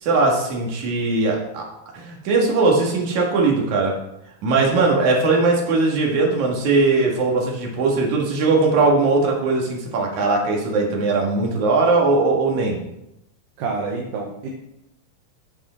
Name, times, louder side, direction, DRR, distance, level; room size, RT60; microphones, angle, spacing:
voice 1, 0.0-1.6 1.9-3.9 4.4-12.8, right 3 dB, 55° right, -1 dB, 3.0 m, -19 dB
voice 2, 13.6-14.5, right 4 dB, 70° right, 0 dB, 2.3 m, -27 dB
8.9 x 8.6 x 4.5 m, 0.85 s
omnidirectional pair, 4.5 m